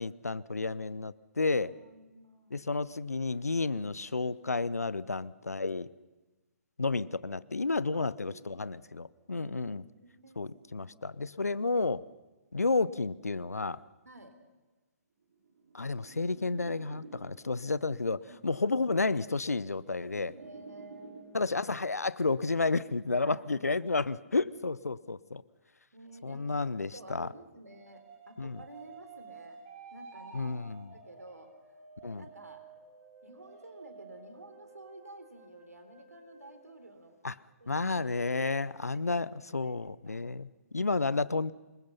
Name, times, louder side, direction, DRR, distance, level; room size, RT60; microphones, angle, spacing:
voice 1, 0.0-1.7 2.5-5.9 6.8-9.8 10.4-12.0 12.5-13.8 15.7-20.3 21.3-25.4 26.2-27.3 28.4-28.6 30.3-30.9 32.0-32.2 37.2-37.3 37.7-41.5, left 3 dB, 75° left, 19 dB, 0.7 m, -31 dB
voice 2, 1.6-2.7 7.9-8.7 9.3-11.5 14.0-14.3 18.2-18.5 20.3-21.5 23.2-24.0 25.9-29.6 29.9-31.5 32.2-32.6 33.2-37.2 37.6-37.8 38.4-39.8 40.0-40.2, right 2 dB, 80° right, 6 dB, 3.8 m, -52 dB
sound 1, 15.3-17.7 18.7-21.7, right 4 dB, 50° right, 6.5 m, -51 dB
sound 2, 27.7-37.6, right 4 dB, 30° right, 5.3 m, -53 dB
26.0 x 22.0 x 5.6 m, 1.2 s
figure-of-eight pair, 130°, 8 cm